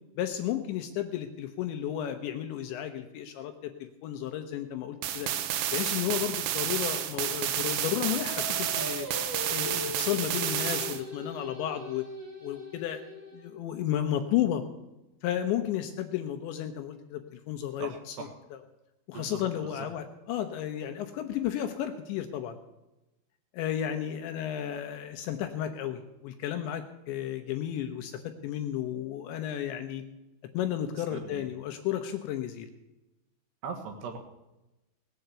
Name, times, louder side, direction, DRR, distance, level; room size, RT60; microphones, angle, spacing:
voice 1, 0.2-5.3 5.7-9.1 9.5-12.1 12.4-13.0 13.3-14.6 15.2-18.2 19.1-22.6 23.5-30.0 30.5-32.7, left 11 dB, 80° left, 6 dB, 2.8 m, -33 dB
sound 1, 5.0-11.0, right 11 dB, 90° right, 3.6 m, -31 dB
Singing, 8.2-13.5, left 2 dB, 30° right, 2.2 m, -40 dB
voice 2, 17.8-18.3 19.1-19.9 30.9-31.5 33.6-34.2, right 5 dB, 65° right, 3 dB, 3.2 m, -40 dB
18.5 x 7.8 x 8.1 m, 0.99 s
omnidirectional pair, 5.8 m